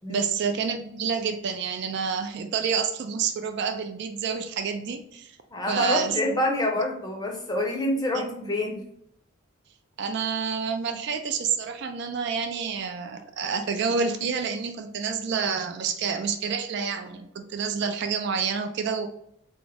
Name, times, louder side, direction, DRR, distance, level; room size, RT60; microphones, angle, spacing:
voice 1, 0.1-5.3 5.7-6.4 8.1-8.5 10.0-19.1, right 6 dB, 55° right, 7 dB, 0.3 m, -28 dB
voice 2, 5.5-8.8, left 1 dB, 20° left, 0 dB, 0.6 m, -27 dB
3.5 x 2.0 x 3.3 m, 0.71 s
head